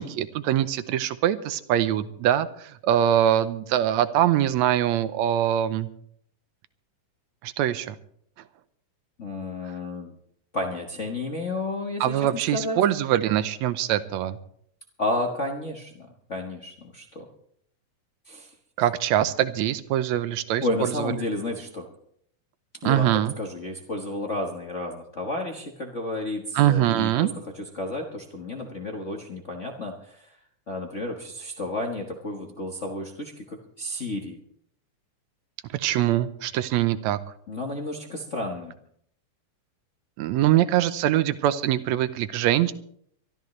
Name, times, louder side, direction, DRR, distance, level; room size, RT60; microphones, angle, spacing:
voice 1, 0.0-5.9 7.4-8.0 12.0-14.4 18.8-21.1 22.8-23.3 26.6-27.3 35.7-37.2 40.2-42.7, right 12 dB, 75° right, 13 dB, 1.8 m, -23 dB
voice 2, 9.2-10.1 10.5-12.8 15.0-17.3 18.3-18.5 20.6-21.9 22.8-30.4 30.7-34.4 37.5-38.8, left 2 dB, 65° left, 1 dB, 0.7 m, -32 dB
23.5 x 13.0 x 3.2 m, 0.66 s
omnidirectional pair, 3.6 m